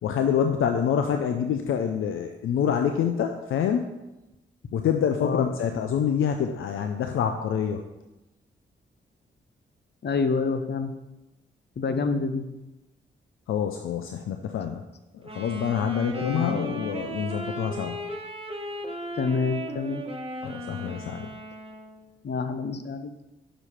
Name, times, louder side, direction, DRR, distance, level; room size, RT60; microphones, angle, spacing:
voice 1, 0.0-3.9 4.7-7.8 13.5-14.8 15.1-18.0 20.4-21.3, left 8 dB, 75° left, 6 dB, 0.6 m, -26 dB
voice 2, 10.0-10.9 11.8-12.4 16.2-16.6 19.2-20.0 22.2-23.1, left 4 dB, 55° left, 9 dB, 0.9 m, -27 dB
Wind instrument woodwind instrument, 15.2-22.1, right 1 dB, 25° right, 1.4 m, -36 dB
6.2 x 5.1 x 5.7 m, 0.97 s
supercardioid pair, 40°, 21 cm